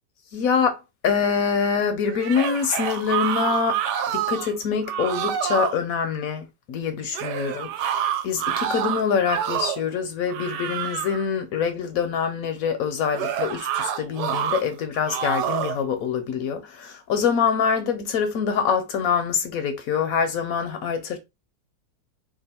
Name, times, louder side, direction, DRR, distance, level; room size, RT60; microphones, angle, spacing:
voice 1, 0.3-3.8 4.1-21.2, left 6 dB, 70° left, 0.8 m, -25 dB
sound 1, 2.1-4.5 4.9-5.8 7.1-9.9 10.3-11.3 13.1-14.6 15.1-15.8, right 10 dB, 75° right, 1.2 m, -27 dB
2.9 x 2.4 x 4.1 m
omnidirectional pair, 1.9 m